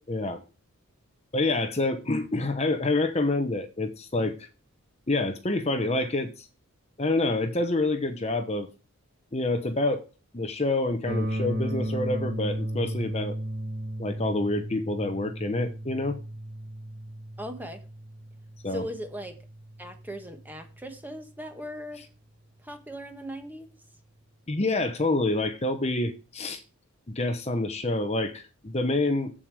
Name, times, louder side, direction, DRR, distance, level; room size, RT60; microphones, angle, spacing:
voice 1, 0.1-0.4 1.3-4.5 5.1-6.5 7.0-8.7 9.3-10.0 10.3-13.4 14.0-16.2 18.6-18.8 24.5-26.6 27.1-29.3, left 2 dB, 30° left, 0.9 m, -27 dB
sound 1, 11.1-21.0, right 1 dB, 65° right, 2.0 m, -35 dB
voice 2, 17.4-17.8 18.7-19.4 19.8-22.0 22.6-23.7, equal, 10° right, 1.3 m, -38 dB
7.8 x 7.5 x 4.8 m
head